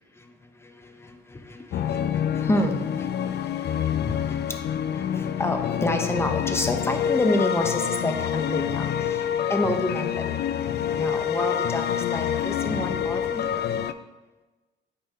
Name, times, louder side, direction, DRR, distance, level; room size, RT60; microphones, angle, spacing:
voice 1, 0.2-10.4 10.9-13.6, left 1 dB, 10° left, 5 dB, 0.9 m, -29 dB
sound 1, 1.7-13.9, left 9 dB, 55° left, 0.4 m, -27 dB
8.5 x 5.5 x 2.9 m, 1.2 s
cardioid pair, 90°, 20 cm